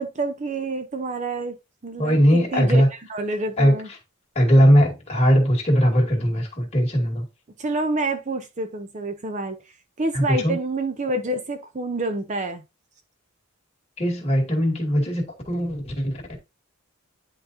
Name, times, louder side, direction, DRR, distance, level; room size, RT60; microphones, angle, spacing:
voice 1, 0.0-1.5 1.8-3.9 7.6-9.6 10.0-12.6, right 2 dB, 35° right, 0.6 m, -28 dB
voice 2, 2.0-2.9 3.6-3.8 4.4-7.2 10.1-10.6 14.0-16.2, equal, 30° left, 2.2 m, -19 dB
10.5 x 4.0 x 2.6 m
head